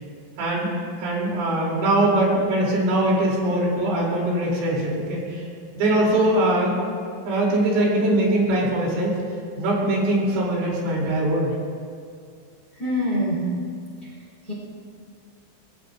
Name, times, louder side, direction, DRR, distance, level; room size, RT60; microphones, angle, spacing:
voice 1, 0.4-0.7 1.0-5.4 5.8-6.8 7.3-9.1 9.6-11.5, right 1 dB, 75° right, -3 dB, 5.9 m, -22 dB
voice 2, 12.8-13.5 14.5-14.6, equal, 10° left, -6 dB, 3.9 m, -24 dB
24.0 x 21.0 x 2.6 m, 2.2 s
omnidirectional pair, 5.8 m